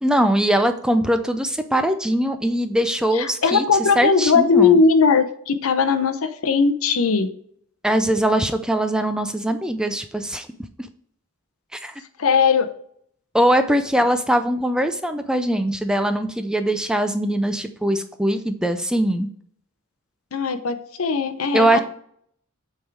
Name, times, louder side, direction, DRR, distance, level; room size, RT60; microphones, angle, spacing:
voice 1, 0.0-3.6 4.0-4.8 7.8-10.5 11.7-11.9 13.3-19.3 21.5-21.8, right 1 dB, 5° right, 8 dB, 0.4 m, -21 dB
voice 2, 3.1-7.3 12.2-12.7 20.3-21.8, left 5 dB, 85° left, 10 dB, 0.7 m, -19 dB
8.1 x 3.6 x 4.6 m, 0.64 s
head